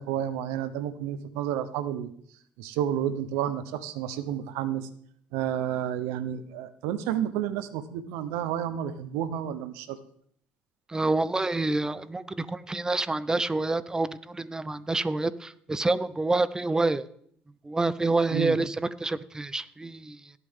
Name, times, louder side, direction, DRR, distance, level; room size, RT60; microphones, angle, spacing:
voice 1, 0.0-2.1 2.6-4.9 5.3-10.0 18.3-18.6, right 10 dB, 90° right, 13 dB, 0.9 m, -30 dB
voice 2, 10.9-17.1 17.6-20.3, right 2 dB, 15° right, 17 dB, 0.6 m, -27 dB
18.5 x 8.3 x 3.7 m, 0.66 s
cardioid pair, 95°, 4 cm